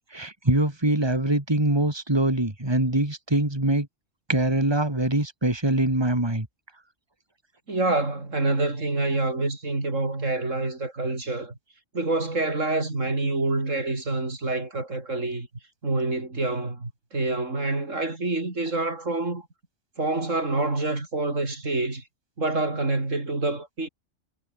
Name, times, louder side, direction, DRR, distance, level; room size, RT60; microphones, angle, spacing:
voice 1, 0.1-3.9 4.3-6.5, right 1 dB, 20° right, 3.4 m, -23 dB
voice 2, 7.7-11.6 11.9-15.5 15.8-19.5 20.0-22.0 22.4-23.9, right 2 dB, 80° right, 4.8 m, -27 dB
omnidirectional pair, 1.3 m